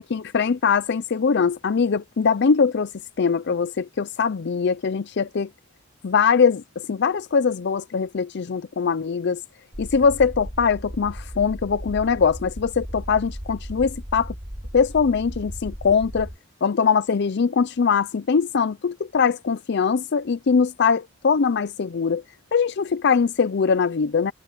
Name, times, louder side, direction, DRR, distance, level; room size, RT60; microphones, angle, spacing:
voice 1, 0.0-2.9 3.2-5.5 6.0-9.4 9.8-14.3 14.7-16.3 16.6-22.2 22.5-24.3, left 5 dB, 60° left, 0.5 m, -22 dB
sound 1, 9.7-16.4, equal, 30° right, 4.3 m, -36 dB
head